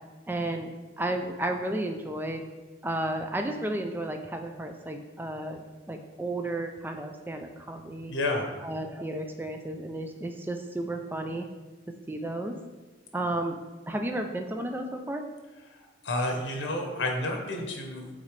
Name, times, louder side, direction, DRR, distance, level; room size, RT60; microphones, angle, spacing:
voice 1, 0.3-2.4 2.8-8.1 8.6-11.5 12.1-12.6 13.1-13.6 13.9-15.3, right 1 dB, 10° right, 5 dB, 0.3 m, -33 dB
voice 2, 8.1-8.5 15.7-18.1, left 1 dB, 75° left, 3 dB, 1.0 m, -30 dB
8.5 x 3.8 x 3.3 m, 1.2 s
head